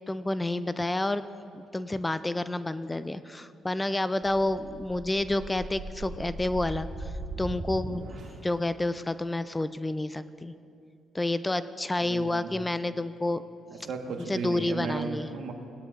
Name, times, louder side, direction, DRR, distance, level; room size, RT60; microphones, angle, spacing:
voice 1, 0.1-1.2 1.5-7.1 7.4-8.0 8.4-10.5 11.1-13.4 14.3-15.3, left 2 dB, 15° left, 13 dB, 0.3 m, -29 dB
sound 1, 4.2-8.5, right 2 dB, 55° right, 1.6 m, -39 dB
voice 2, 12.0-12.5 13.7-15.5, right 5 dB, 75° right, 3 dB, 1.2 m, -35 dB
19.0 x 10.0 x 2.4 m, 2.6 s
cardioid pair, 90°, 0 cm